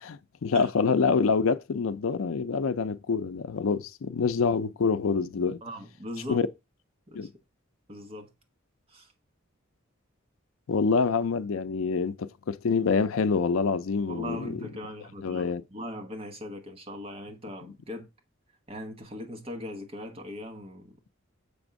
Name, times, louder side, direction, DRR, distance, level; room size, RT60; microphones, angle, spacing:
voice 1, 0.0-5.6 6.3-6.5 7.1-7.3 10.7-14.6 15.2-15.6, left 5 dB, 80° left, 0.5 m, -26 dB
voice 2, 5.6-6.4 7.1-7.3 7.9-8.3 8.9-9.1 14.1-15.5 15.7-18.1 18.7-20.9, left 1 dB, 30° right, 1.1 m, -39 dB
6.9 x 3.5 x 5.2 m
head